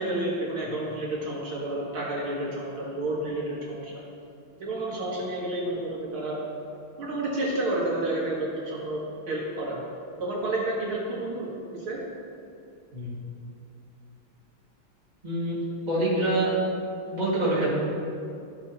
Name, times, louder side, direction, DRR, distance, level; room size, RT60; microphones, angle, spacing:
voice 1, 0.0-4.0 4.6-6.4 7.0-9.0 9.3-9.8 10.2-12.0, right 1 dB, 75° right, -6 dB, 2.6 m, -30 dB
voice 2, 15.2-16.7 17.1-17.7, right 2 dB, 20° right, -8 dB, 2.2 m, -26 dB
14.0 x 6.4 x 3.0 m, 2.5 s
omnidirectional pair, 2.3 m